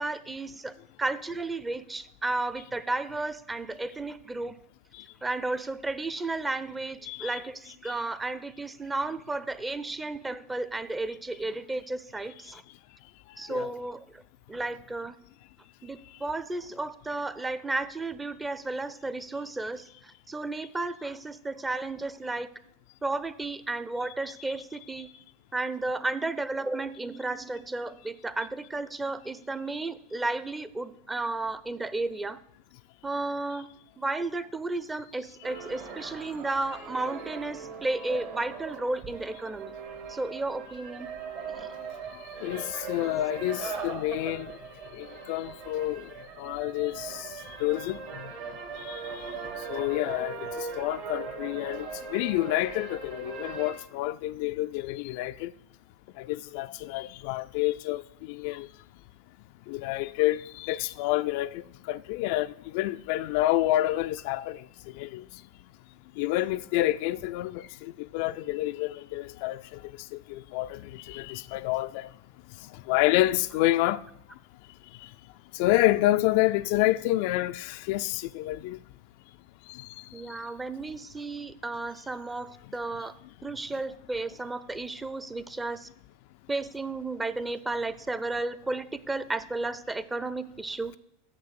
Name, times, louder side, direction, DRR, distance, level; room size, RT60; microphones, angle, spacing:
voice 1, 0.0-4.6 5.2-12.6 13.4-14.2 14.5-15.2 15.8-22.5 23.0-25.1 25.5-32.4 33.0-33.7 34.0-39.7 40.1-41.1 41.6-41.7 43.0-43.2 43.6-43.8 80.1-83.1 83.4-85.9 86.5-90.9, right 2 dB, 15° right, 0.6 m, -33 dB
sound 1, 35.4-53.7, right 5 dB, 60° right, 2.4 m, -40 dB
voice 2, 42.4-44.5 44.9-46.1 46.4-48.3 48.8-49.4 49.7-55.5 56.2-58.7 59.7-64.6 64.9-65.2 66.2-69.8 70.1-72.1 72.9-74.0 75.0-75.1 75.5-78.8 79.7-79.9, left 16 dB, 60° left, 0.3 m, -28 dB
7.0 x 6.0 x 7.5 m
hypercardioid pair, 90°, 0 cm